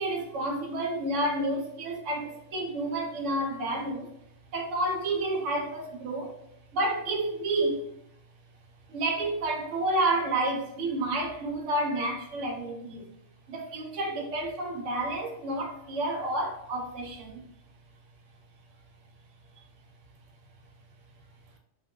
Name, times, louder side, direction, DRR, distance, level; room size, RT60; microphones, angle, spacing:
voice 1, 0.0-4.1 4.5-6.3 6.7-7.8 8.9-13.1 13.5-17.4, right 1 dB, 80° right, 1 dB, 1.0 m, -30 dB
2.5 x 2.1 x 3.6 m, 0.80 s
omnidirectional pair, 1.2 m